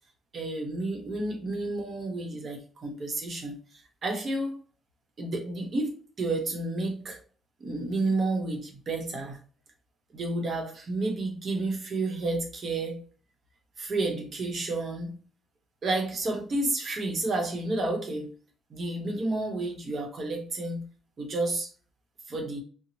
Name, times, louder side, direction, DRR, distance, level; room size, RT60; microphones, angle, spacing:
voice 1, 0.3-4.6 5.2-7.2 7.6-9.4 10.1-13.0 13.8-15.2 15.8-18.3 18.7-20.8 21.2-21.7 22.3-22.6, right 2 dB, 45° right, 1.2 m, -31 dB
4.3 x 2.3 x 2.9 m
cardioid pair, 90°, 0 cm